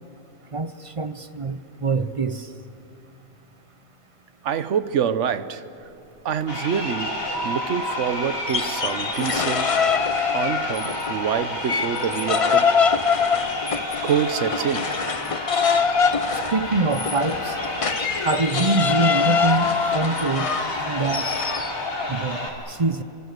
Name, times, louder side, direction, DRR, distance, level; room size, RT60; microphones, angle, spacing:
voice 1, 0.5-2.5 16.5-17.6 18.2-20.5 20.8-21.3 22.1-23.0, right 3 dB, 30° right, 0.6 m, -24 dB
voice 2, 4.4-5.6 6.2-7.2 7.4-9.7 10.3-12.8 14.0-14.9, right 8 dB, 65° right, 1.2 m, -26 dB
Crowd, 6.4-22.5, left 2 dB, 80° left, 4.0 m, -29 dB
sound 1, 8.4-11.1 11.4-21.7, left 6 dB, 40° left, 0.5 m, -24 dB
30.0 x 25.0 x 6.7 m
omnidirectional pair, 1.4 m